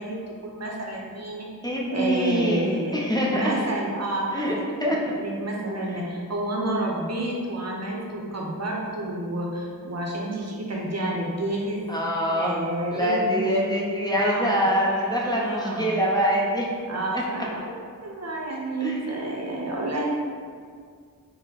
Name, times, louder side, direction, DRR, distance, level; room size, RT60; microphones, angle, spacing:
voice 1, 0.0-1.5 1.9-2.9 3.3-4.7 5.1-11.9 12.3-13.6 14.1-16.0 16.9-17.7 18.0-20.0, right 1 dB, 50° right, -2 dB, 0.7 m, -30 dB
voice 2, 1.6-3.5 4.3-4.5 4.8-5.0 11.9-12.6 12.9-16.7 17.1-17.2 18.8-19.1, equal, 10° left, -4 dB, 0.6 m, -24 dB
4.0 x 2.1 x 4.0 m, 2.1 s
cardioid pair, 55°, 34 cm